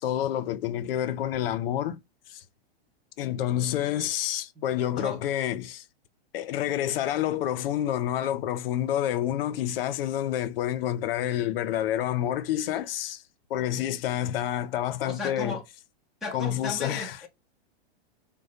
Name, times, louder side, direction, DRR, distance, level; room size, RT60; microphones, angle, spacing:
voice 1, 0.0-2.0 2.3-2.4 3.2-5.8 6.3-13.2 13.5-15.6 16.3-17.2, left 11 dB, 60° left, 0.6 m, -28 dB
voice 2, 15.0-15.6 16.2-17.3, left 3 dB, ahead, 0.4 m, -35 dB
6.3 x 2.2 x 2.7 m
supercardioid pair, 150°, 32 cm